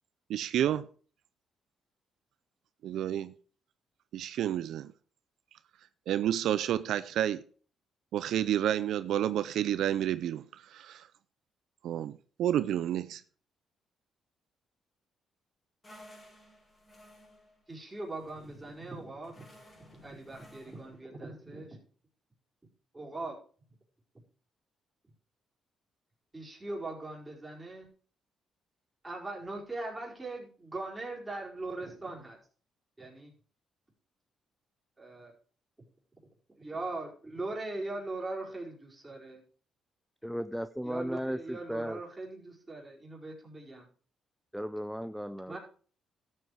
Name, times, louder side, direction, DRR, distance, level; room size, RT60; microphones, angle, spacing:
voice 1, 0.3-0.8 2.8-3.3 4.1-4.9 6.1-7.4 8.1-11.1 11.8-12.1 12.4-13.2, right 11 dB, 75° right, 0.5 m, -30 dB
sound 1, 15.8-21.0, equal, 25° left, 5.6 m, -57 dB
voice 2, 17.7-19.5 19.9-21.8 22.9-23.3 26.3-27.9 29.0-32.4 33.0-33.3 35.0-35.3 36.5-39.4 40.8-43.9 45.5-45.6, right 2 dB, 15° right, 4.7 m, -40 dB
voice 3, 40.2-42.0 44.5-45.6, equal, ahead, 0.5 m, -35 dB
12.5 x 8.1 x 4.7 m
cardioid pair, 90°, 0 cm